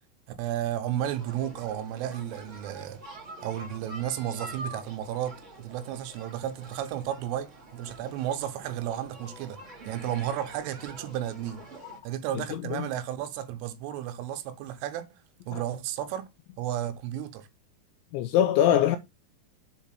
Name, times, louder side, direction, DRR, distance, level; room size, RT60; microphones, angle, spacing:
voice 1, 0.4-3.0 3.4-9.6 9.9-11.6 12.0-15.1 15.5-16.3 16.6-17.5, right 11 dB, 80° right, 3.3 m, -33 dB
sound 1, 1.0-12.0, right 2 dB, 30° right, 1.4 m, -46 dB
voice 2, 12.5-12.9 15.5-15.6 18.1-19.0, left 10 dB, 85° left, 2.6 m, -23 dB
7.4 x 4.0 x 5.8 m
omnidirectional pair, 5.8 m